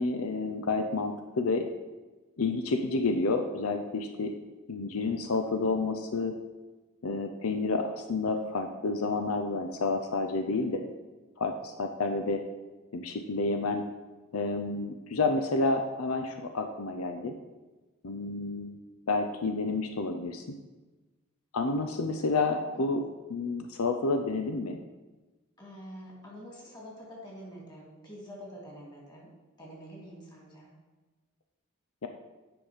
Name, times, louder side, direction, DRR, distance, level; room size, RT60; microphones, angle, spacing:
voice 1, 0.0-1.7 2.4-4.3 4.7-6.3 7.0-10.8 11.4-12.4 12.9-13.8 14.3-17.3 18.0-18.8 19.1-20.6 21.5-23.0 23.3-24.8 32.0-32.1, left 3 dB, 80° left, 6 dB, 0.6 m, -30 dB
voice 2, 25.6-29.3 29.6-30.7, equal, 20° left, -3 dB, 2.5 m, -46 dB
8.8 x 5.4 x 5.0 m, 1.2 s
head